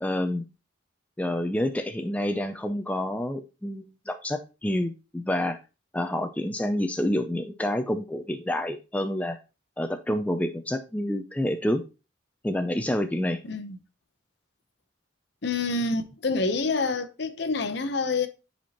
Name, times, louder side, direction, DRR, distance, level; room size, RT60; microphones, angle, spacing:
voice 1, 0.0-0.4 1.2-5.6 5.9-9.4 9.8-11.8 12.4-13.4, left 1 dB, 5° left, 0.3 m, -28 dB
voice 2, 13.4-13.8 15.4-18.3, left 3 dB, 55° left, 0.7 m, -27 dB
10.0 x 4.3 x 2.9 m
head